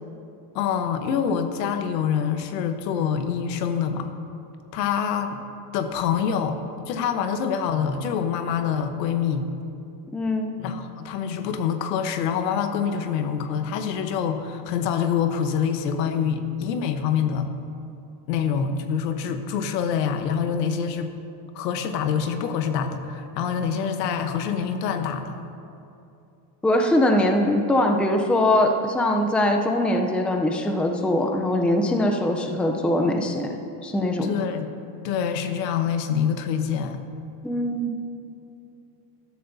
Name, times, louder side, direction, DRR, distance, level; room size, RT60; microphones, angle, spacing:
voice 1, 0.5-4.1 4.7-5.4 5.7-6.6 6.9-9.4 10.6-17.5 18.3-21.1 21.5-25.4 34.2-34.7 35.0-37.0, left 7 dB, 80° left, 8 dB, 1.1 m, -25 dB
voice 2, 10.1-10.6 26.6-34.5 37.4-38.0, left 1 dB, ahead, 3 dB, 0.5 m, -22 dB
13.5 x 12.5 x 2.7 m, 2.6 s
supercardioid pair, 115°, 49 cm